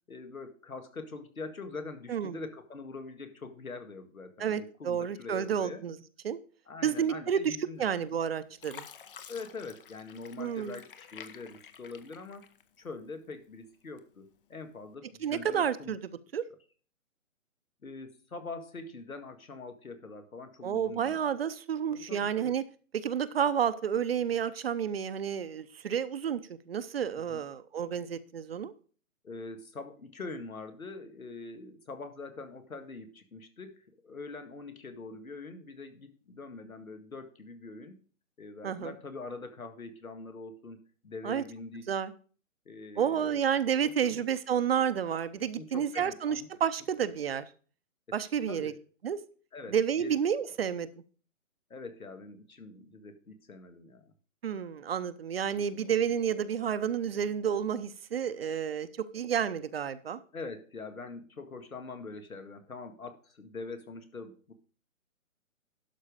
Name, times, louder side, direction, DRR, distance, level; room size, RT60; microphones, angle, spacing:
voice 1, 0.1-5.8 6.7-7.9 9.3-12.5 12.8-16.0 17.8-21.2 21.9-22.5 27.3-27.4 29.2-38.0 38.4-42.0 42.7-43.4 43.8-44.2 45.5-46.5 48.5-48.7 49.5-50.2 51.7-54.1 55.6-55.8 60.3-64.5, left 3 dB, 90° left, 8 dB, 2.0 m, -44 dB
voice 2, 4.4-6.0 6.2-6.4 6.8-8.9 10.4-10.8 15.2-16.0 16.3-16.4 20.6-22.6 22.9-26.4 26.7-28.7 38.6-38.9 41.2-41.4 41.9-42.1 43.0-47.5 48.1-48.7 49.0-49.2 49.7-50.9 54.4-58.9 59.1-60.2, right 8 dB, 45° right, 13 dB, 0.7 m, -30 dB
Fill (with liquid), 7.8-8.2 8.6-13.0 13.4-14.2 14.8-14.9, left 8 dB, 40° left, 0.9 m, -50 dB
11.5 x 5.5 x 5.1 m, 0.41 s
hypercardioid pair, 150°, 41 cm